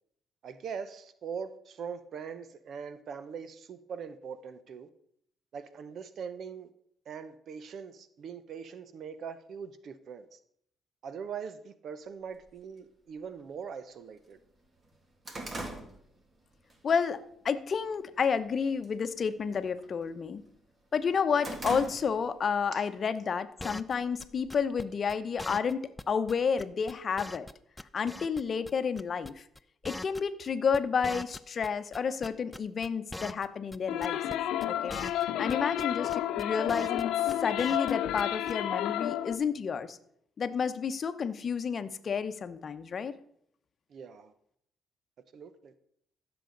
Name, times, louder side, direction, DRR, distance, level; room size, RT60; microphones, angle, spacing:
voice 1, 0.4-4.9 5.5-6.7 7.1-10.4 11.0-14.4 21.3-21.5 22.7-22.8 35.7-35.9 43.9-44.3 45.3-45.7, right 6 dB, 65° right, 0.7 m, -42 dB
sound 1, 12.4-12.5 13.4-13.5 13.9-14.0 14.4-16.8 17.2-17.5 17.9-18.4 18.7-19.0 19.3-20.6 20.9-22.4 22.8-22.9 23.8-24.7, right 2 dB, 35° right, 2.3 m, -41 dB
voice 2, 16.8-20.4 20.9-27.5 27.9-29.4 29.8-34.2 34.7-37.1 37.4-40.0 40.4-43.1, left 6 dB, 50° left, 0.8 m, -30 dB
sound 2, 23.6-23.9 24.2-24.3 24.5-24.8 25.1-25.2 25.4-25.7 26.0-26.1 26.3-26.4 26.6-27.5 27.8-28.7 29.0-29.3 29.5-31.7 31.9-33.5 33.7-33.8 34.0-34.3 34.6-34.7 34.9-35.2 35.5-35.8 36.1-37.0 37.3-37.9 38.2-38.3 38.5-38.6, left 1 dB, 10° left, 0.4 m, -42 dB
sound 3, 33.9-39.4, left 12 dB, 90° left, 0.5 m, -31 dB
15.0 x 6.9 x 3.9 m
cardioid pair, 90°, 0 cm